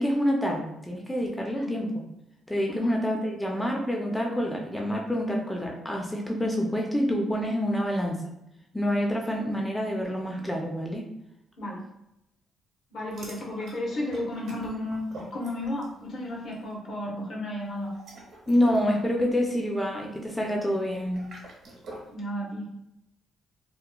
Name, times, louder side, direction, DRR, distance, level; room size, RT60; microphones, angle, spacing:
voice 1, 0.0-1.9 2.5-8.2 8.7-11.1 18.5-21.3, equal, 10° left, 0 dB, 0.4 m, -27 dB
voice 2, 12.9-17.9 22.1-22.7, left 1 dB, 65° left, -2 dB, 0.9 m, -33 dB
sound 1, 13.1-16.0 16.3-16.6 17.8-22.1, right 1 dB, 70° right, 0.8 m, -47 dB
2.9 x 2.1 x 2.2 m, 0.84 s
cardioid pair, 90°, 0 cm